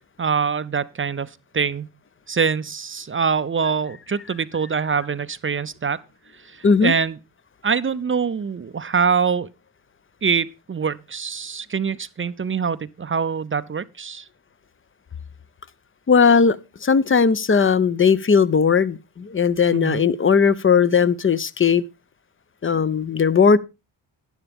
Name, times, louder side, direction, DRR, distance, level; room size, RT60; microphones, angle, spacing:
voice 1, 0.2-1.9 2.3-6.0 6.4-7.2 7.6-9.5 10.2-14.3 19.7-20.0, right 6 dB, 25° right, 0.6 m, -24 dB
voice 2, 6.6-6.9 16.1-21.8 22.6-23.6, left 6 dB, 25° left, 0.6 m, -18 dB
12.0 x 10.0 x 3.5 m
supercardioid pair, 55°, 48 cm